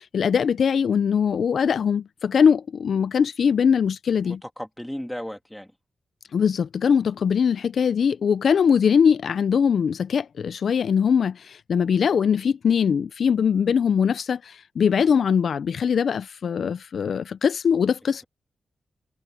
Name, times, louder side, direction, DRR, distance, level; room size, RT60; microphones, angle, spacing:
voice 1, 0.0-4.4 6.3-18.2, left 7 dB, 70° left, 0.4 m, -21 dB
voice 2, 4.2-5.7, equal, 5° left, 2.8 m, -35 dB
wide cardioid pair, 100°, 0 cm